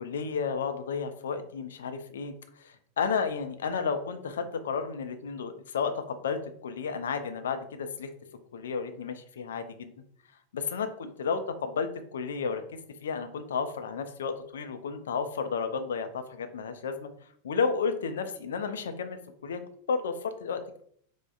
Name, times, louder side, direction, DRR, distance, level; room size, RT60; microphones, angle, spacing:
voice 1, 0.0-8.1 8.5-9.9 10.5-12.6 13.0-17.1 17.4-19.6 19.9-20.8, left 5 dB, 65° left, 8 dB, 0.3 m, -32 dB
4.5 x 2.0 x 2.4 m, 0.64 s
figure-of-eight pair, 90°, 0 cm